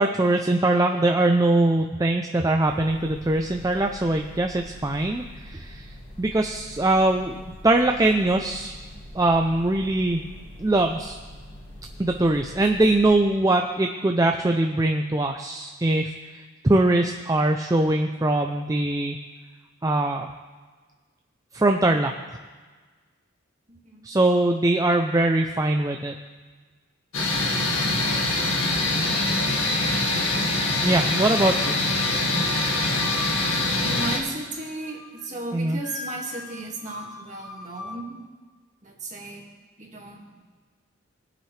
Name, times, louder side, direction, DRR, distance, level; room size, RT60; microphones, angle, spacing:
voice 1, 0.0-7.4 7.6-8.7 9.1-10.2 10.6-11.2 12.0-19.2 19.8-20.3 21.5-22.1 24.0-26.2 30.8-31.8 35.5-35.8, right 2 dB, 15° right, 3 dB, 0.4 m, -22 dB
sound 1, 2.6-13.1, left 1 dB, 35° left, 3.4 m, -44 dB
voice 2, 23.7-24.1 33.8-38.2 38.8-39.5 39.8-40.3, right 2 dB, 35° right, -2 dB, 1.9 m, -35 dB
sound 2, 27.1-34.2, left 2 dB, 80° left, 1.9 m, -24 dB
Wind instrument woodwind instrument, 31.1-34.2 34.6-35.3 35.8-38.0, left 2 dB, ahead, 1.1 m, -41 dB
20.5 x 8.0 x 3.3 m, 1.4 s
head